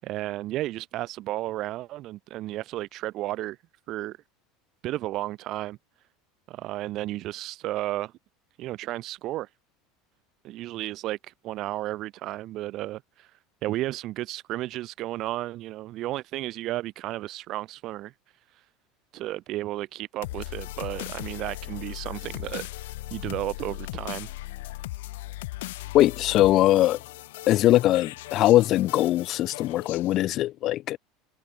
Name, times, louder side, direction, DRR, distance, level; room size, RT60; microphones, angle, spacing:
voice 1, 0.0-3.6 3.9-4.2 4.8-5.8 6.5-8.1 8.6-9.5 10.4-13.3 13.6-18.1 19.1-24.3, right 16 dB, 40° right, 7.6 m, -33 dB
sound 1, 20.2-30.2, left 18 dB, 90° left, 2.3 m, -38 dB
voice 2, 25.9-27.0 27.5-31.0, left 14 dB, 35° left, 0.5 m, -21 dB
cardioid pair, 165°, 0 cm